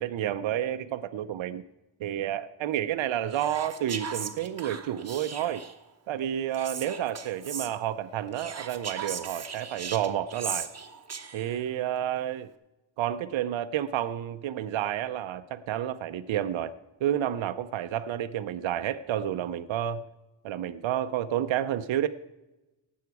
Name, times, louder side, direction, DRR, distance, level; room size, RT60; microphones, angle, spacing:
voice 1, 0.0-1.6 2.0-5.6 6.1-10.7 11.3-12.5 13.0-16.7 17.0-20.0 20.4-22.1, right 11 dB, 70° right, 9 dB, 0.6 m, -30 dB
Whispering, 3.3-5.8 6.5-7.7 8.3-11.6, right 6 dB, 30° right, 0.9 m, -38 dB
17.5 x 7.2 x 4.7 m, 1.0 s
wide cardioid pair, 130°, 48 cm